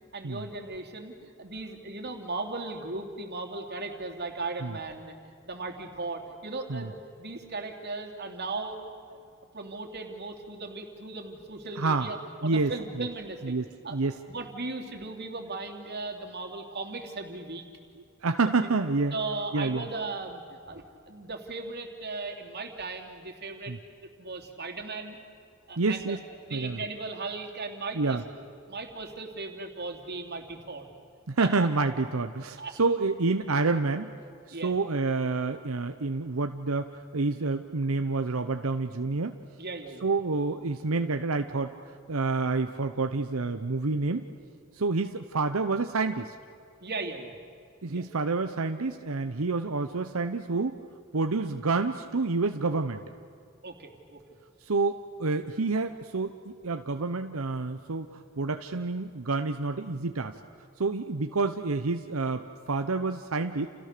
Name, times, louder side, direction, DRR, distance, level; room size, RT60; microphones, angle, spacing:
voice 1, 0.1-5.1 5.4-8.8 9.1-9.2 9.5-12.2 12.4-13.6 13.8-14.0 14.3-17.6 19.1-23.7 24.2-25.1 25.7-26.2 26.5-28.2 28.7-30.9 31.4-31.5 32.6-32.8 34.5-34.7 39.6-40.1 46.8-47.3 47.9-48.0 53.6-54.2, right 3 dB, 50° right, 3 dB, 3.1 m, -37 dB
voice 2, 11.8-12.1 12.4-12.7 13.0-13.1 13.4-14.1 18.0-19.1 19.5-19.9 23.7-23.8 25.8-26.2 26.5-26.8 27.9-28.2 31.3-34.1 34.5-39.4 40.0-44.3 44.7-46.3 47.8-50.8 51.1-53.0 54.6-60.4 60.8-63.7, right 3 dB, 90° right, 7 dB, 0.9 m, -28 dB
29.5 x 29.0 x 6.8 m, 2.3 s
head